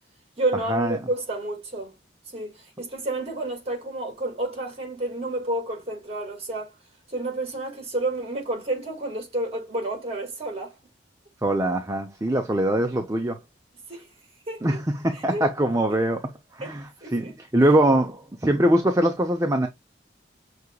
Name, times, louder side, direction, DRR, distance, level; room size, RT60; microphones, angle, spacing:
voice 1, 0.4-2.0 2.3-6.7 7.1-10.7 13.9-14.1 14.5-14.8 15.1-15.5 15.9-16.0 16.6-16.7 17.0-17.3, right 2 dB, 35° right, 1.9 m, -30 dB
voice 2, 11.4-13.4 14.6-19.7, right 1 dB, 15° right, 0.6 m, -23 dB
6.4 x 2.9 x 2.3 m
head